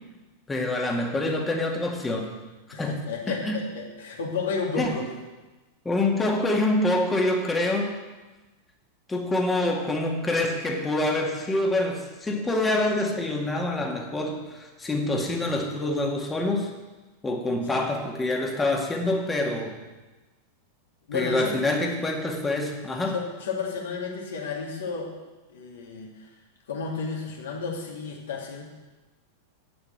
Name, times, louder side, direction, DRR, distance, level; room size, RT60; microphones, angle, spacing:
voice 1, 0.5-2.3 2.8-3.6 4.8-5.0 5.9-7.9 9.1-16.7 17.2-19.8 21.1-23.1, left 2 dB, 10° left, 2 dB, 2.0 m, -26 dB
voice 2, 2.7-5.1 17.6-17.9 21.1-21.5 23.1-25.1 25.5-26.3 26.7-28.6, left 5 dB, 60° left, -1 dB, 2.6 m, -32 dB
8.9 x 7.9 x 8.0 m, 1.2 s
figure-of-eight pair, 90°, 0 cm